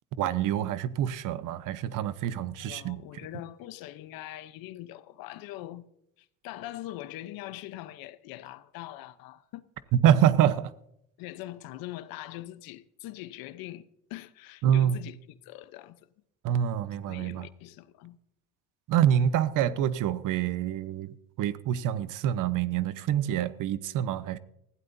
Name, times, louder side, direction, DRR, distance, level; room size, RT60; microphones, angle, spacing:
voice 1, 0.2-3.0 10.0-10.7 14.6-15.0 16.4-17.5 18.9-21.1 21.4-24.4, right 10 dB, 55° right, 1.0 m, -26 dB
voice 2, 2.6-5.9 6.2-9.7 11.2-16.1 17.1-18.2, left 15 dB, 65° left, 0.9 m, -42 dB
20.0 x 15.5 x 2.7 m
cardioid pair, 125°, 37 cm